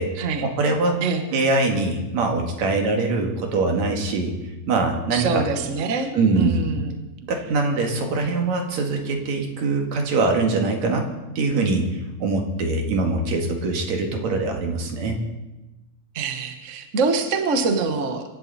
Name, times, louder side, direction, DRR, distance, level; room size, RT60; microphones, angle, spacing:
voice 1, 0.4-1.0 1.3-4.3 4.7-5.4 6.1-6.7 7.3-11.1 11.4-15.2, right 3 dB, 65° right, 2 dB, 3.2 m, -23 dB
voice 2, 5.1-6.1 6.4-7.0 16.1-18.2, right 4 dB, 45° right, 6 dB, 0.9 m, -24 dB
25.5 x 12.0 x 4.2 m, 1.0 s
omnidirectional pair, 3.4 m